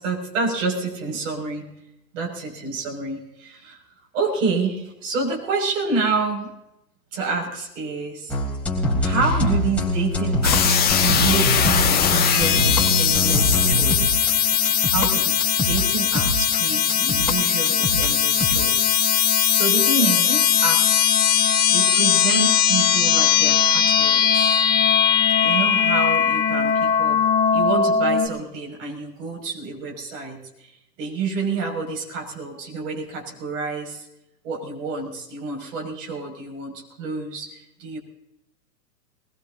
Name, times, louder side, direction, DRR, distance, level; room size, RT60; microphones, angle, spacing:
voice 1, 0.0-1.7 2.1-3.8 4.1-6.5 7.1-8.4 9.0-14.2 14.9-15.4 15.7-18.9 19.5-21.2 21.7-24.6 25.4-27.2 27.5-34.1 34.4-38.0, right 4 dB, 50° right, 0 dB, 6.3 m, -28 dB
sound 1, 8.3-15.1 15.4-17.3 17.6-18.5, left 1 dB, 5° left, 3.4 m, -23 dB
sound 2, 10.4-28.3, left 8 dB, 20° left, 1.5 m, -19 dB
22.0 x 20.5 x 2.8 m, 0.87 s
figure-of-eight pair, 110°, 49 cm